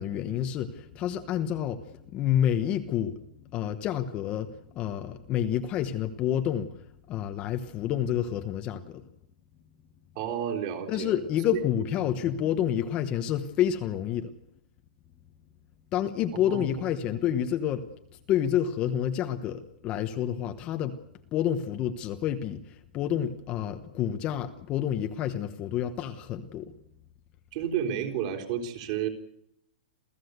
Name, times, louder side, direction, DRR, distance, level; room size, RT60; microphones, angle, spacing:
voice 1, 0.0-3.2 3.5-9.0 10.9-14.3 15.9-17.9 18.3-21.0 21.3-26.7, left 10 dB, 20° left, 7 dB, 1.1 m, -29 dB
voice 2, 10.2-11.1 12.1-12.3 16.4-16.9 27.5-29.1, right 9 dB, 35° right, 4 dB, 3.9 m, -31 dB
28.0 x 15.5 x 8.1 m, 0.77 s
hypercardioid pair, 170°, 5 cm